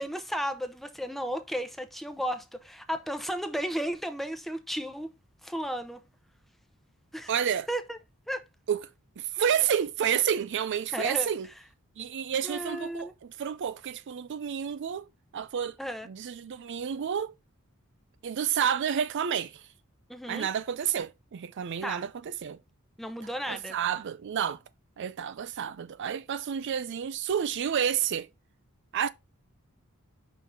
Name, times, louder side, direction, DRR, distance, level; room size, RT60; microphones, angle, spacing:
voice 1, 0.0-5.1 5.4-6.0 7.1-7.4 7.7-8.0 8.3-8.5 9.4-9.5 10.9-11.3 12.4-13.1 15.8-16.1 20.1-20.5 21.8-22.0 23.0-23.8, equal, ahead, 0.8 m, -34 dB
voice 2, 7.3-7.7 8.7-8.8 9.2-11.5 12.0-15.1 15.3-15.8 16.1-17.3 18.2-19.6 20.3-22.6 23.5-24.6 25.0-28.3 28.9-29.1, right 8 dB, 55° right, 0.4 m, -30 dB
5.4 x 3.8 x 5.5 m
head